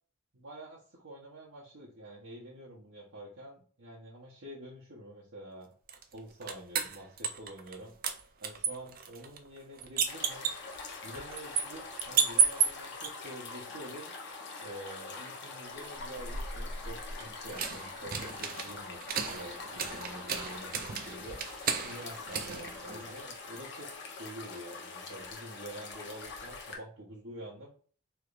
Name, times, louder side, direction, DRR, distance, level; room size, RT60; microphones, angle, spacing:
voice 1, 0.3-5.7 6.1-8.0 8.4-10.5 11.0-14.1 14.6-21.4 21.8-23.9 24.2-27.7, right 1 dB, 85° right, -6 dB, 0.9 m, -47 dB
sound 1, 5.9-7.8 8.0-13.1 15.9-23.4, right 7 dB, 45° right, 0.4 m, -33 dB
sound 2, 10.1-26.8, left 4 dB, 55° left, 0.8 m, -44 dB
3.3 x 3.0 x 2.4 m, 0.42 s
head